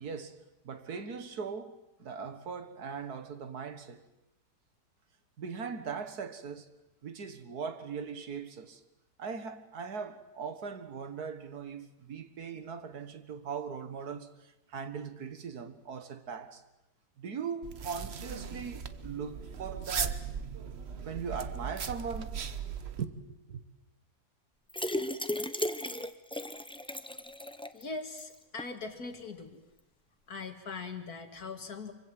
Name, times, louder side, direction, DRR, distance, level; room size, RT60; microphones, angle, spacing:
voice 1, 0.0-4.0 5.4-6.7 7.0-8.8 9.2-16.6 17.2-20.2 20.9-22.4 23.0-23.6, right 6 dB, 70° right, 2.0 m, -40 dB
sound 1, 17.6-23.1, right 6 dB, 45° right, 1.1 m, -38 dB
sound 2, 24.7-27.8 28.2-28.3 28.6-28.7, left 1 dB, 10° left, 0.3 m, -35 dB
voice 2, 27.7-29.6 30.3-31.9, left 4 dB, 65° left, 2.6 m, -41 dB
25.0 x 24.0 x 7.8 m
omnidirectional pair, 1.8 m